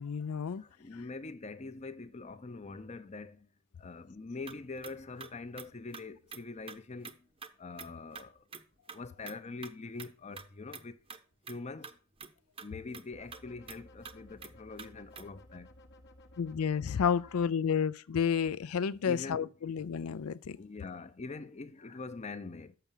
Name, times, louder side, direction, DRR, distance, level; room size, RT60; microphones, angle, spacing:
voice 1, 0.0-0.6 16.4-20.6, left 7 dB, 75° left, 0.4 m, -31 dB
voice 2, 0.6-3.5 3.8-7.3 7.6-8.4 8.9-11.0 11.5-12.0 12.6-15.7 19.0-19.5 20.5-22.8, left 3 dB, 30° left, 0.6 m, -44 dB
sound 1, 4.4-7.2 7.4-7.5 7.8-7.9 8.1-8.2 8.5-8.6 8.9-9.0 9.3-9.7 10.0-10.5 10.7-10.8 11.1-11.2 11.4-11.6 11.8-11.9 12.2-12.3 12.6-12.7 12.9-13.0 13.3-13.4 13.7-13.8 14.0-14.1 14.4-14.5 14.8-14.9 15.2-15.3, right 5 dB, 25° right, 0.7 m, -47 dB
sound 2, 13.1-17.5, left 1 dB, 50° left, 0.9 m, -56 dB
6.8 x 6.0 x 7.3 m
head